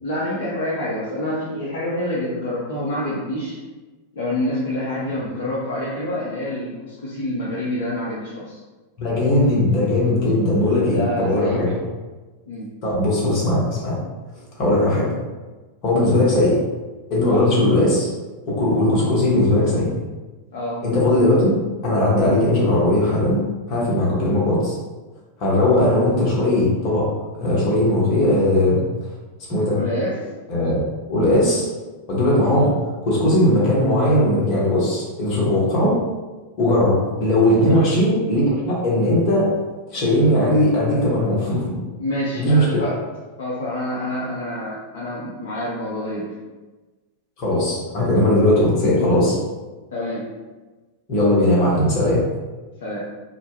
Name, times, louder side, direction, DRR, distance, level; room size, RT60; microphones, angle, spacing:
voice 1, 0.0-3.6 4.1-8.6 10.6-11.6 12.5-12.7 17.3-17.4 20.5-20.8 29.7-30.3 37.6-37.8 42.0-43.0 43.4-46.3 49.9-50.3 52.8-53.0, left 1 dB, 60° left, -7 dB, 0.5 m, -27 dB
voice 2, 9.0-11.7 12.8-14.0 14.6-15.1 15.8-16.5 17.1-18.1 18.4-19.9 20.8-21.6 21.8-23.4 23.7-24.8 25.4-27.0 27.4-28.8 29.5-29.8 30.5-30.8 31.1-31.7 32.1-32.7 33.0-35.9 36.6-39.5 39.9-41.8 42.4-42.8 47.4-49.4 51.1-52.2, left 1 dB, 40° left, -5 dB, 0.9 m, -18 dB
2.2 x 2.1 x 3.1 m, 1.2 s
figure-of-eight pair, 90°, 0 cm